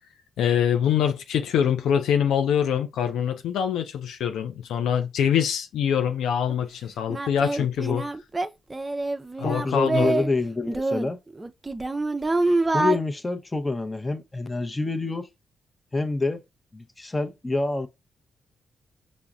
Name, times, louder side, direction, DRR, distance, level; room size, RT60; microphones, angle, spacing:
voice 1, 0.4-8.1 9.4-10.1, left 8 dB, 80° left, 0.3 m, -24 dB
Singing, 6.5-6.6 7.1-10.3 10.7-13.0, right 2 dB, 25° right, 0.4 m, -26 dB
voice 2, 9.4-11.2 12.7-15.3 15.9-16.4 16.7-17.9, left 3 dB, 25° left, 0.6 m, -27 dB
5.6 x 2.0 x 2.4 m
supercardioid pair, 50°, 0 cm